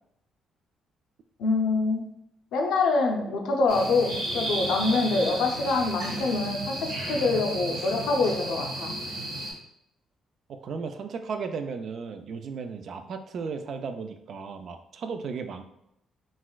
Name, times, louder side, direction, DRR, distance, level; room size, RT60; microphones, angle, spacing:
voice 1, 1.4-2.1 2.5-8.9, left 3 dB, 85° left, 2 dB, 0.5 m, -25 dB
sound 1, 3.7-9.5, right 1 dB, 90° right, 1.3 m, -33 dB
voice 2, 10.5-15.6, right 5 dB, 60° right, 7 dB, 0.3 m, -35 dB
3.9 x 2.4 x 2.3 m, 0.78 s
cardioid pair, 90°, 0 cm